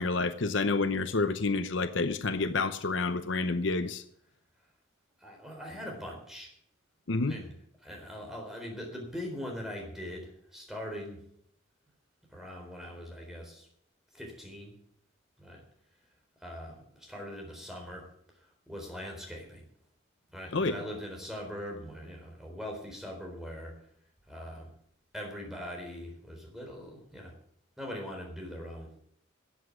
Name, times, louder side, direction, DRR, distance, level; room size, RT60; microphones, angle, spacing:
voice 1, 0.0-4.0 7.1-7.4 20.5-20.7, left 3 dB, 65° left, 10 dB, 0.8 m, -29 dB
voice 2, 5.2-6.5 7.3-7.5 7.8-11.2 12.3-13.7 14.1-14.7 15.4-15.6 16.4-18.1 18.7-19.7 20.3-23.7 24.3-24.7 25.1-27.3 27.8-28.9, equal, ahead, 0 dB, 4.0 m, -41 dB
13.0 x 8.2 x 8.5 m, 0.67 s
head